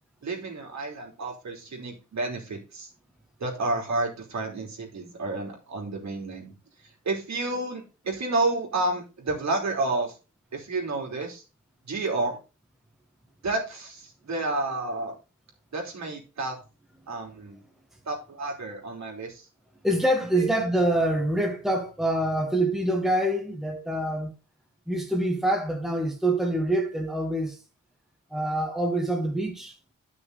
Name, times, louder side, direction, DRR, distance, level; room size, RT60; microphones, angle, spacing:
voice 1, 0.2-2.9 3.4-6.5 7.0-10.1 10.5-11.4 11.9-12.4 13.4-15.1 15.7-16.6 17.1-17.6 18.1-19.4 20.4-20.5, right 2 dB, 65° right, 3.2 m, -30 dB
voice 2, 19.8-24.3 24.9-27.6 28.3-29.7, right 1 dB, ahead, 1.6 m, -25 dB
10.5 x 6.3 x 4.0 m
wide cardioid pair, 150°, 30 cm